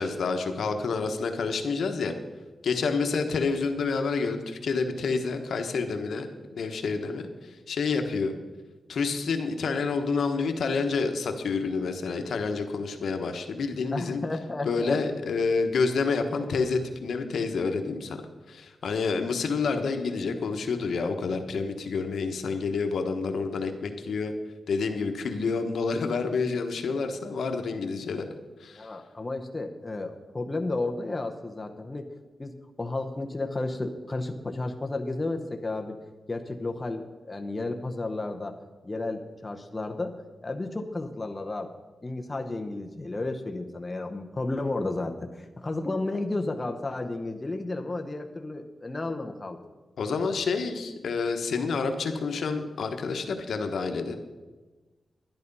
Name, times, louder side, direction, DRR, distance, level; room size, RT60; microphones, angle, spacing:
voice 1, 0.0-2.1 2.6-6.3 6.5-8.3 8.9-14.2 14.6-18.2 18.5-24.3 24.7-28.3 28.6-28.9 50.0-54.2, left 4 dB, 75° left, 6 dB, 1.2 m, -28 dB
voice 2, 13.9-15.0 28.8-32.1 32.4-32.5 32.8-36.0 36.3-38.6 38.8-40.1 40.4-41.7 42.0-49.6, left 2 dB, 20° left, 4 dB, 0.9 m, -32 dB
11.5 x 11.0 x 5.4 m, 1.3 s
wide cardioid pair, 130°, 0 cm